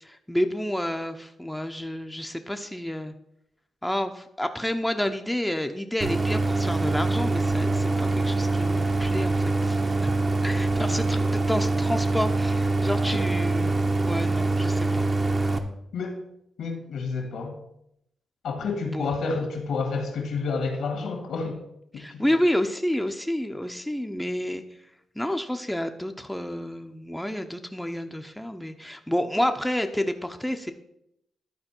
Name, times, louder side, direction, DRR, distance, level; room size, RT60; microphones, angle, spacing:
voice 1, 0.0-3.1 3.8-10.1 10.4-13.7 14.1-15.1 18.9-19.1 22.0-24.6 25.2-30.7, left 1 dB, 5° left, 5 dB, 0.6 m, -29 dB
Idling, 6.0-15.6, right 3 dB, 35° right, 0.9 m, -24 dB
voice 2, 16.6-17.6 18.4-21.6 21.9-22.2, left 4 dB, 80° left, 3 dB, 1.8 m, -30 dB
11.5 x 4.4 x 4.4 m, 0.79 s
cardioid pair, 70°, 0 cm